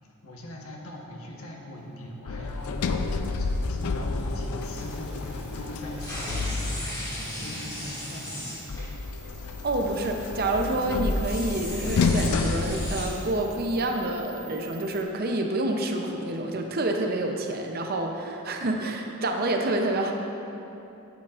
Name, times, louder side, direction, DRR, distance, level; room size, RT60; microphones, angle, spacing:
voice 1, 0.2-8.5, left 1 dB, 70° left, -2 dB, 1.2 m, -41 dB
Sliding door, 2.3-7.1 8.7-13.6, left 3 dB, 90° left, 0.4 m, -30 dB
sound 1, 4.6-15.0, right 4 dB, 5° right, 1.3 m, -48 dB
sound 2, 6.0-8.9 9.2-9.4 10.4-10.8 11.2-13.1, left 1 dB, 15° left, 1.8 m, -36 dB
voice 2, 9.6-20.1, right 2 dB, 45° right, 3 dB, 0.6 m, -28 dB
9.6 x 9.1 x 2.5 m, 2.9 s
head